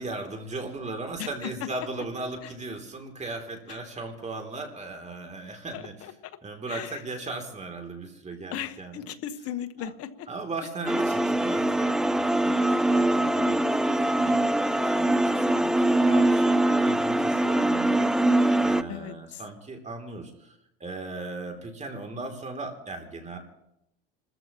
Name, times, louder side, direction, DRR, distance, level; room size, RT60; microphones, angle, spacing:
voice 1, 0.0-5.9 6.4-9.1 9.8-9.9 10.3-14.4 14.7-23.4, right 3 dB, 25° right, 4 dB, 3.0 m, -38 dB
voice 2, 1.2-1.7 2.4-2.5 3.7-3.8 5.7-6.4 6.7-7.0 8.5-10.3 18.9-19.4, left 10 dB, 55° left, 11 dB, 1.4 m, -37 dB
sound 1, 10.9-18.8, right 1 dB, ahead, 0.6 m, -23 dB
30.0 x 14.5 x 3.0 m, 0.81 s
supercardioid pair, 95°, 29 cm